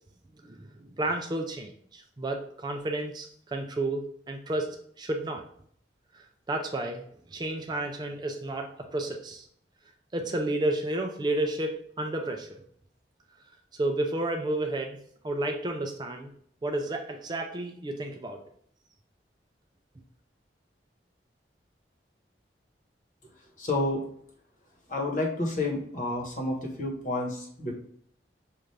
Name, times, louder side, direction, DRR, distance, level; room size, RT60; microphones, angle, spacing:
voice 1, 1.0-5.4 6.5-7.0 7.3-9.5 10.1-12.6 13.7-15.0 15.2-16.3 16.6-18.4, right 2 dB, 25° right, 3 dB, 0.4 m, -31 dB
voice 2, 23.6-24.0 24.9-27.7, left 2 dB, 45° left, 0 dB, 1.1 m, -30 dB
5.5 x 2.5 x 3.2 m, 0.63 s
head